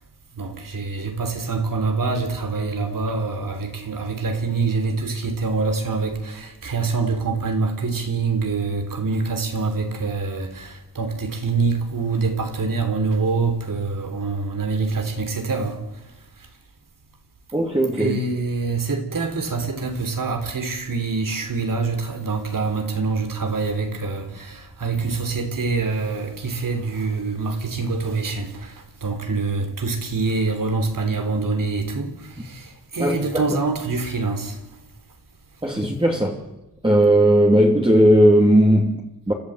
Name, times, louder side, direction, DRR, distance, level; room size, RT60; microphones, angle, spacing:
voice 1, 0.3-15.8 18.0-34.6, right 4 dB, 55° right, 3.4 m, -25 dB
voice 2, 17.5-18.2 33.0-33.4 35.6-36.4 36.8-39.3, right 1 dB, 15° right, 3.0 m, -17 dB
30.0 x 12.5 x 8.0 m
cardioid pair, 80°, 38 cm